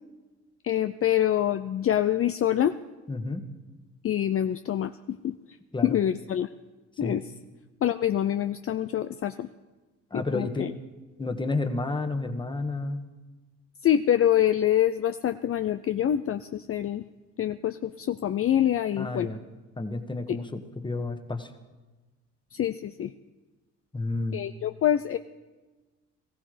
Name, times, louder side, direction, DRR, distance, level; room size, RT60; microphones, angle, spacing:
voice 1, 0.6-2.7 4.0-5.4 5.8-6.5 7.0-7.2 7.8-9.5 10.1-10.7 13.8-17.0 17.4-19.3 20.3-20.4 22.5-23.1 24.3-25.2, left 11 dB, 45° left, 10 dB, 0.5 m, -25 dB
voice 2, 3.1-3.4 5.7-6.0 7.0-7.2 10.1-10.7 11.2-13.1 19.0-19.4 19.8-21.5 23.9-24.4, left 2 dB, 15° left, 8 dB, 1.4 m, -31 dB
18.5 x 15.0 x 5.0 m, 1.2 s
cardioid pair, 90°, 30 cm